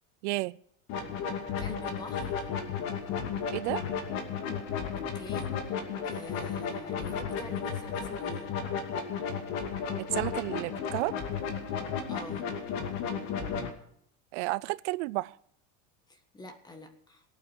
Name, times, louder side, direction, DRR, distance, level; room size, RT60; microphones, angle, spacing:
voice 1, 0.2-0.5 3.5-3.8 10.0-11.1 14.3-15.4, right 22 dB, 80° right, 20 dB, 0.6 m, -31 dB
sound 1, 0.9-13.7, left 6 dB, 50° left, 2.6 m, -34 dB
voice 2, 1.6-2.5 4.9-8.5 12.1-12.5 16.1-17.2, left 2 dB, 10° left, 8 dB, 1.6 m, -46 dB
18.5 x 8.7 x 6.5 m, 0.68 s
cardioid pair, 170°, 35 cm